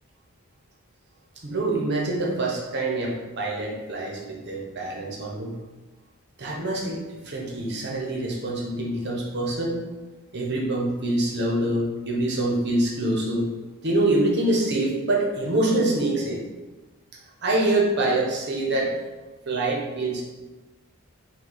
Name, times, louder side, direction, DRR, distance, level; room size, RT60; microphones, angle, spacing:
voice 1, 1.4-5.6 6.4-7.0 7.2-9.8 10.3-13.5 13.8-16.4 17.4-18.9 19.5-20.2, right 2 dB, 50° right, -2 dB, 0.9 m, -25 dB
5.0 x 2.3 x 4.0 m, 1.2 s
head